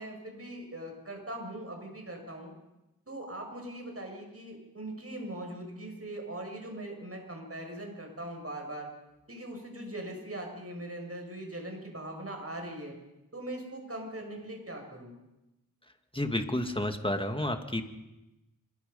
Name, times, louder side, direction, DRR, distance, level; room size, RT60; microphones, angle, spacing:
voice 1, 0.0-2.5 3.1-8.9 9.3-12.9 13.3-15.2, right 1 dB, 40° right, 2 dB, 6.9 m, -41 dB
voice 2, 16.1-17.8, left 1 dB, 15° left, 6 dB, 2.2 m, -30 dB
26.0 x 22.0 x 5.5 m, 0.95 s
wide cardioid pair, 65°, 35 cm